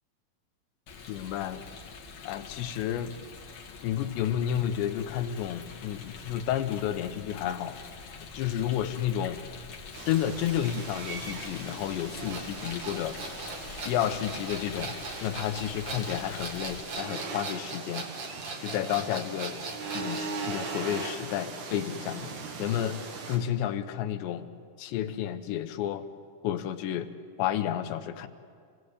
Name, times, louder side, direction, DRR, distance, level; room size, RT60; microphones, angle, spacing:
Rain, 0.9-16.8, left 5 dB, 55° left, 2.0 m, -45 dB
voice 1, 1.1-1.7 2.2-3.1 3.8-7.8 8.3-9.4 10.1-13.2 13.8-18.1 18.6-19.6 19.9-22.3 22.6-23.0 23.3-24.5 24.8-26.1 26.4-27.1 27.4-28.3, left 10 dB, 85° left, 9 dB, 3.2 m, -31 dB
sound 1, 9.9-23.4, right 4 dB, 65° right, 3.9 m, -40 dB
sound 2, 12.3-20.3, right 4 dB, 45° right, 2.8 m, -39 dB
27.0 x 17.5 x 8.0 m, 2.2 s
omnidirectional pair, 5.0 m